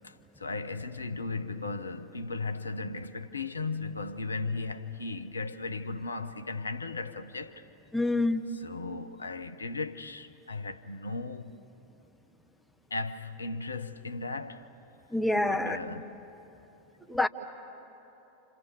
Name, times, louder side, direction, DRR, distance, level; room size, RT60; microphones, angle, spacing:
voice 1, 0.0-7.6 8.6-11.5 12.9-14.6 15.4-16.1, left 3 dB, 75° left, 0.9 m, -36 dB
voice 2, 7.9-8.4 15.1-15.8 17.1-17.3, left 2 dB, 5° left, 1.1 m, -26 dB
30.0 x 27.5 x 7.2 m
figure-of-eight pair, 90°, 0 cm